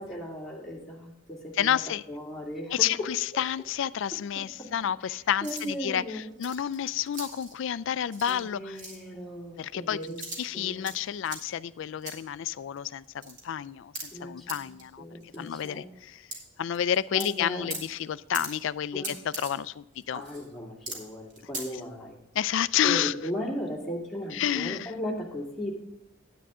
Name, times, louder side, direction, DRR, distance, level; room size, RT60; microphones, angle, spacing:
voice 1, 0.0-1.8 2.1-3.1 4.4-4.7 5.0-6.3 8.3-10.2 10.5-10.9 14.1-14.7 15.0-15.8 17.1-17.7 18.9-19.1 20.1-22.2 22.8-25.7, equal, ahead, -4 dB, 2.1 m, -37 dB
voice 2, 1.6-2.0 2.7-8.8 9.6-10.0 10.4-13.9 14.2-15.0 15.4-15.8 16.6-19.1 19.4-20.2 22.3-23.1 24.3-24.9, left 10 dB, 60° left, 18 dB, 0.3 m, -30 dB
sound 1, 5.4-5.7 6.3-7.5 8.1-8.4 8.7-9.0 10.0-11.0 11.2-11.4 12.0-12.2 12.8-12.9 13.0-13.4 13.9-14.0 14.5-14.6 14.8-14.9 15.2-15.7 16.3-16.4 16.7-17.3 17.7-17.8 18.3-18.5 19.0-19.5 19.9-20.5 20.9-21.0 21.2-21.6, right 2 dB, 35° right, 2.3 m, -39 dB
10.0 x 9.3 x 3.6 m, 0.96 s
head